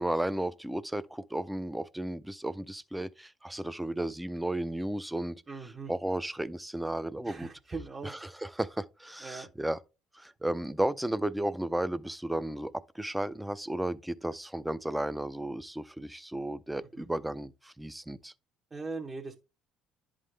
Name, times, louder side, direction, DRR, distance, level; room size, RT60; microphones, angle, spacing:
voice 1, 0.0-5.4 5.9-7.5 8.0-9.8 10.1-18.3, right 1 dB, 5° right, 0.5 m, -34 dB
voice 2, 5.5-5.9 7.2-8.1 9.2-9.5 17.0-17.1 18.7-19.4, right 4 dB, 30° right, 0.9 m, -40 dB
10.5 x 3.7 x 3.2 m
supercardioid pair, 75°, 0 cm